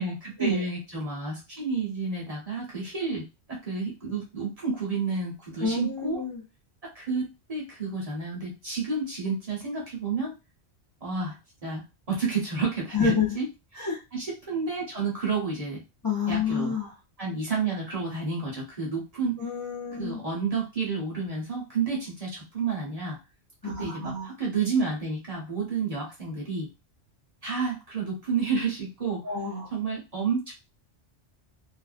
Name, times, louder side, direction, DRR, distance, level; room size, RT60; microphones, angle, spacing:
voice 1, 0.0-6.2 6.9-10.3 11.0-11.4 11.6-11.8 12.1-13.4 13.8-15.8 16.3-16.7 17.2-19.4 20.0-23.2 23.6-26.7 27.4-29.2 29.7-30.5, right 4 dB, 35° right, -4 dB, 0.8 m, -30 dB
voice 2, 5.6-6.4 12.9-13.3 13.8-14.0 16.0-16.9 19.4-20.2 23.6-24.3 29.2-29.7, left 5 dB, 25° left, -5 dB, 0.5 m, -28 dB
2.5 x 2.1 x 2.4 m, 0.26 s
omnidirectional pair, 1.2 m